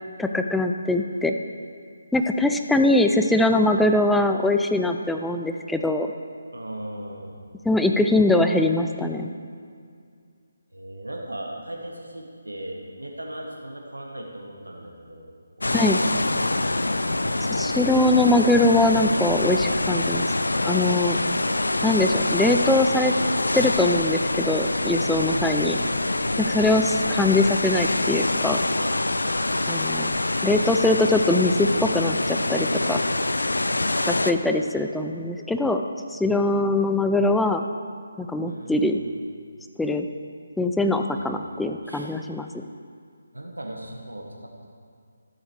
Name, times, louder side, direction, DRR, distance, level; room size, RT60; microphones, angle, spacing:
voice 1, 0.2-1.3 2.1-6.1 7.7-9.3 15.7-16.0 17.5-20.3 20.6-21.2 21.8-23.1 23.5-25.8 26.4-28.6 29.7-30.1 30.4-33.0 34.1-35.8 36.1-37.6 38.2-39.0 39.8-40.1 40.6-42.6, left 2 dB, 5° left, 5 dB, 0.4 m, -22 dB
voice 2, 6.5-7.4 10.7-15.3 15.6-16.2 17.0-17.8 25.2-25.7 38.4-39.1 41.2-41.5 41.8-42.1 43.3-44.7, right 1 dB, 90° right, 0 dB, 1.5 m, -38 dB
sound 1, 15.6-34.3, left 2 dB, 80° left, 0.5 m, -25 dB
13.0 x 7.9 x 4.8 m, 2.2 s
figure-of-eight pair, 150°, 0 cm